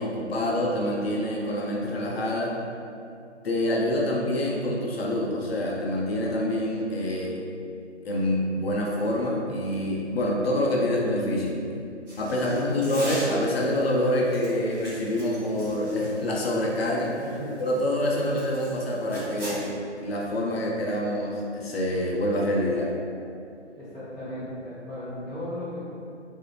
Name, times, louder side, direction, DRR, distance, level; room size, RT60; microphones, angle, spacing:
voice 1, 0.0-2.5 3.4-7.4 8.0-11.6 12.2-17.3 17.6-22.9, left 1 dB, 55° left, -2 dB, 0.6 m, -26 dB
sound 1, 12.1-13.7 14.2-18.7 19.1-19.7, equal, 10° right, 0.6 m, -39 dB
voice 2, 12.4-12.8 17.2-17.6 23.8-25.8, left 1 dB, 20° left, -16 dB, 0.9 m, -36 dB
2.4 x 2.0 x 3.0 m, 2.5 s
figure-of-eight pair, 145°, 35 cm